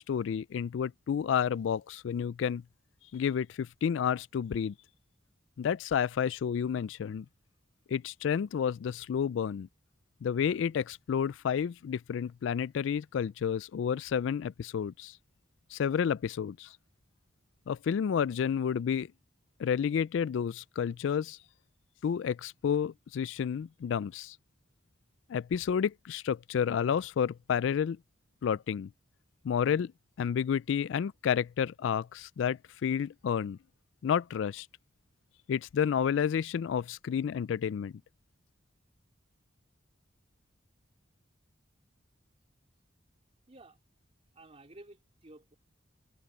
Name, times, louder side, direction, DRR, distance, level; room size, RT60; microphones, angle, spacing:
voice 1, 0.0-2.6 3.1-4.7 5.6-7.3 7.9-9.7 10.2-15.1 15.7-16.7 17.7-19.1 19.6-21.4 22.0-24.3 25.3-28.0 28.4-28.9 29.4-29.9 30.2-33.6 34.0-34.7 35.5-37.9, left 7 dB, 70° left, 0.3 m, -30 dB
voice 2, 43.5-43.8 44.3-45.6, right 2 dB, 35° right, 3.1 m, -53 dB
head